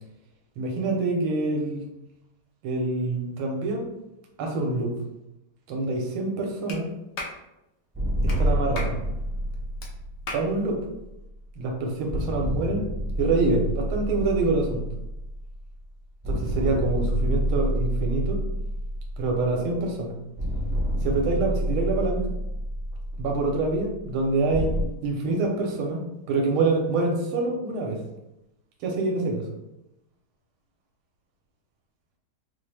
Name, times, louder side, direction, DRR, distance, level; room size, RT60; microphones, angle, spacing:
voice 1, 0.6-1.8 2.6-3.9 4.4-4.9 5.7-6.9 8.2-9.0 10.3-10.8 11.6-12.8 13.2-14.8 16.3-18.4 19.2-20.1 21.0-22.3 23.2-24.7 25.0-26.0 26.3-28.0 28.8-29.4, right 3 dB, 80° right, 1 dB, 1.6 m, -26 dB
Clapping, 6.7-6.8 7.2-7.4 8.3-8.4 8.8-9.0 9.8-9.9 10.3-10.5, left 2 dB, 65° left, 1.1 m, -34 dB
sound 1, 7.9-11.5 12.1-15.9 16.2-19.9 20.4-24.8, equal, 10° right, 0.6 m, -29 dB
4.5 x 2.1 x 3.3 m, 0.89 s
omnidirectional pair, 2.3 m